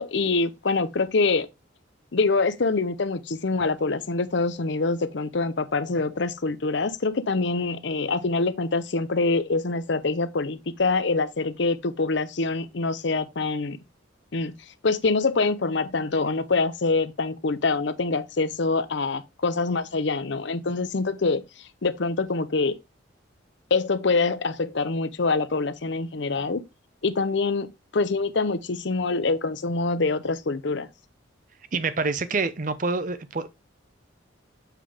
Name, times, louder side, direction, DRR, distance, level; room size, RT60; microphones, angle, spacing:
voice 1, 0.0-1.5 2.1-13.8 14.3-14.5 14.8-21.4 21.8-22.7 23.7-26.6 27.0-27.7 27.9-30.9, left 3 dB, 65° left, 0.7 m, -25 dB
voice 2, 31.7-33.5, right 3 dB, 40° right, 0.6 m, -27 dB
7.5 x 5.2 x 3.4 m
head